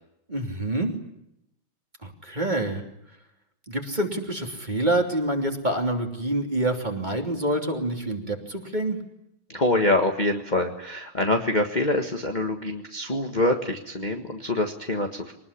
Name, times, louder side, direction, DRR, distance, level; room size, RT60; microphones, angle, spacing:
voice 1, 0.3-0.9 2.0-2.8 3.7-9.0, right 1 dB, 20° right, 3 dB, 3.1 m, -27 dB
voice 2, 9.5-15.3, left 2 dB, 25° left, 3 dB, 1.5 m, -25 dB
24.0 x 19.5 x 10.0 m, 0.83 s
omnidirectional pair, 2.3 m